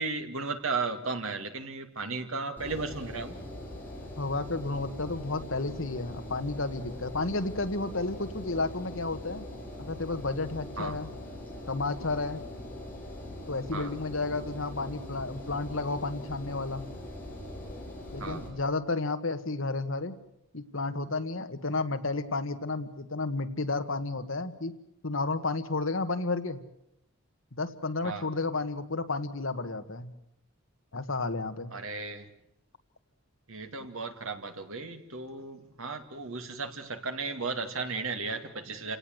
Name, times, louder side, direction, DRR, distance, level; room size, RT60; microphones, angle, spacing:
voice 1, 0.0-3.3 10.8-10.9 13.7-13.9 18.2-18.4 28.0-28.2 31.7-32.3 33.5-39.0, right 4 dB, 70° right, 7 dB, 2.4 m, -35 dB
Engine, 2.6-18.5, left 1 dB, 10° left, 7.5 m, -42 dB
voice 2, 4.2-9.4 9.8-11.1 11.7-12.4 13.5-16.8 18.1-20.2 20.5-24.7 25.0-26.6 27.5-30.1 30.9-31.7, left 3 dB, 65° left, 9 dB, 1.6 m, -32 dB
28.5 x 18.0 x 8.0 m, 0.78 s
head